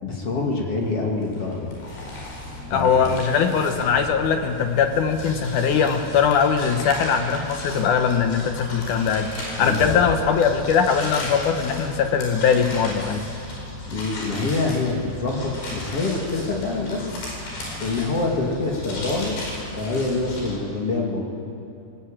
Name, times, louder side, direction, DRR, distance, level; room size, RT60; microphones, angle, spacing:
voice 1, 0.0-1.7 2.7-3.1 9.6-10.0 13.9-17.1 17.8-19.4 19.8-21.2, left 3 dB, 40° left, -1 dB, 2.9 m, -26 dB
sound 1, 0.8-20.5, left 1 dB, 85° left, 7.1 m, -35 dB
voice 2, 2.7-9.3 9.6-13.3, left 6 dB, 70° left, 6 dB, 2.0 m, -21 dB
19.5 x 19.0 x 8.9 m, 2.8 s
omnidirectional pair, 4.8 m